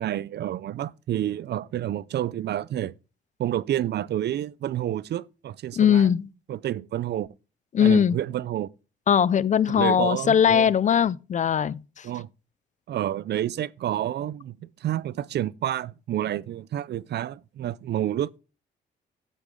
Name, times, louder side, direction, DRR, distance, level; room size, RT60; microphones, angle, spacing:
voice 1, 0.0-2.9 3.4-6.1 6.5-7.3 7.8-8.7 9.7-10.7 12.0-12.3 12.9-18.4, right 12 dB, 60° right, 0.5 m, -29 dB
voice 2, 5.8-6.3 7.7-8.2 9.1-12.1, left 8 dB, 40° left, 0.4 m, -20 dB
8.6 x 8.2 x 3.7 m
cardioid pair, 90°, 20 cm